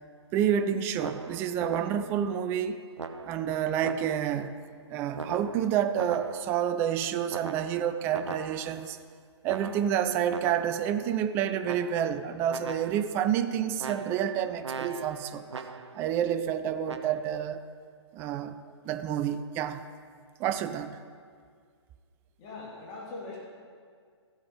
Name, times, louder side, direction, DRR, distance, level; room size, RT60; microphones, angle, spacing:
voice 1, 0.3-2.8 3.3-4.5 4.9-9.0 9.4-15.5 16.0-17.6 18.1-18.6 18.8-19.9 20.4-21.0, right 9 dB, 15° right, 11 dB, 0.3 m, -29 dB
sound 1, 1.0-2.3 3.0-4.4 5.1-6.7 7.3-8.9 9.5-10.9 11.6-12.2 12.5-13.2 13.8-16.1 16.8-17.2, right 5 dB, 75° right, 0.7 m, -40 dB
voice 2, 22.4-23.4, left 3 dB, 30° left, -5 dB, 3.1 m, -41 dB
15.0 x 8.0 x 5.3 m, 2.1 s
figure-of-eight pair, 130°, 15 cm